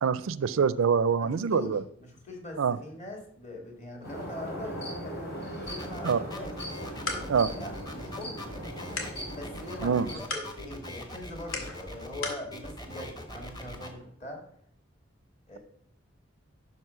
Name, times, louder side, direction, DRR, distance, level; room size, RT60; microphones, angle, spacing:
voice 1, 0.0-1.8 2.6-2.8 6.0-6.2 7.3-7.5 9.8-10.1, right 6 dB, 75° right, 17 dB, 0.4 m, -25 dB
voice 2, 1.2-1.7 2.1-6.5 7.6-14.4 15.5-15.6, left 1 dB, 35° left, 1 dB, 2.0 m, -42 dB
sound 1, 4.0-10.2, equal, 55° left, 3.2 m, -39 dB
sound 2, 5.7-13.9, left 1 dB, 20° left, 1.1 m, -42 dB
sound 3, 6.7-12.5, left 3 dB, 90° left, 2.0 m, -41 dB
11.0 x 4.3 x 5.7 m, 0.67 s
head